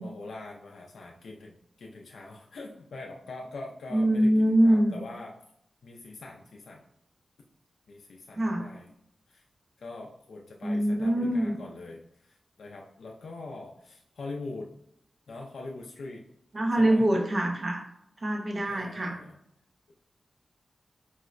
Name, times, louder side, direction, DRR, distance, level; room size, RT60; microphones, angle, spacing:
voice 1, 0.0-4.3 4.6-5.4 5.8-6.8 7.9-8.9 9.3-9.4 9.8-14.7 15.3-16.2 16.8-17.1 18.7-19.3 19.9-20.0, left 2 dB, 90° left, -1 dB, 0.3 m, -43 dB
voice 2, 3.9-5.0 8.3-8.7 10.6-11.6 16.5-17.9 18.2-19.2, right 1 dB, 40° right, 1 dB, 0.5 m, -24 dB
4.4 x 2.0 x 2.3 m, 0.75 s
wide cardioid pair, 85°, 0 cm